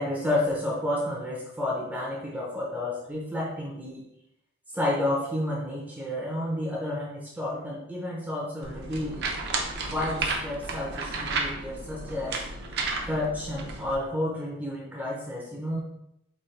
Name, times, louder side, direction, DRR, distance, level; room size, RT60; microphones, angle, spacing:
voice 1, 0.0-4.0 4.7-9.3 9.9-12.4 13.0-15.8, left 1 dB, 5° right, -4 dB, 0.6 m, -30 dB
sound 1, 8.6-14.0, right 3 dB, 50° right, 0.6 m, -32 dB
4.3 x 2.8 x 3.2 m, 0.81 s
head